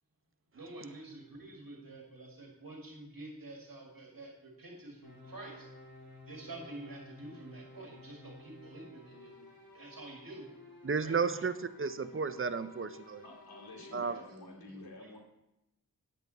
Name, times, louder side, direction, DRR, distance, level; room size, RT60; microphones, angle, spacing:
voice 1, 0.5-5.7 6.3-9.4 9.7-10.5 11.0-11.2, right 2 dB, 70° right, 0 dB, 2.0 m, -48 dB
sound 1, 5.0-14.3, left 1 dB, 65° left, 4.1 m, -54 dB
voice 2, 10.8-13.2 13.9-14.2, right 5 dB, 35° right, 12 dB, 0.6 m, -33 dB
voice 3, 13.2-15.2, left 2 dB, 85° left, 0 dB, 2.5 m, -49 dB
10.0 x 8.2 x 4.0 m, 0.89 s
wide cardioid pair, 60°, 36 cm